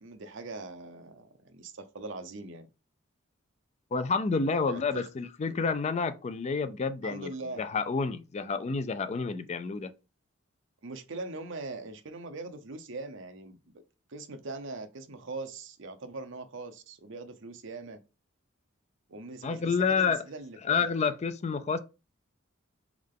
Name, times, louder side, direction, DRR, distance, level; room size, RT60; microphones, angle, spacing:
voice 1, 0.0-2.7 4.7-5.1 7.0-7.7 10.8-13.7 14.1-18.0 19.1-20.9, right 3 dB, 65° right, 0.7 m, -41 dB
voice 2, 3.9-7.3 7.6-9.9 19.4-20.2 20.6-21.8, left 5 dB, 35° left, 0.4 m, -29 dB
3.5 x 3.2 x 3.7 m
head